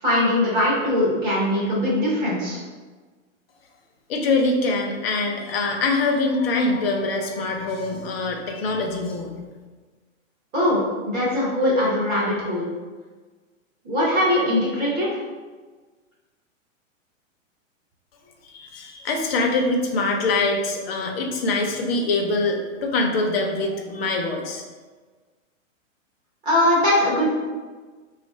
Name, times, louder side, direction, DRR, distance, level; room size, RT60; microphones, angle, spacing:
voice 1, 0.0-2.6 10.5-10.8 11.0-12.7 13.8-15.2 26.4-27.3, left 1 dB, 10° right, -7 dB, 0.6 m, -21 dB
voice 2, 4.1-9.4 18.4-24.6, left 3 dB, 50° left, 2 dB, 0.7 m, -24 dB
3.3 x 2.4 x 4.1 m, 1.4 s
hypercardioid pair, 165°, 40 cm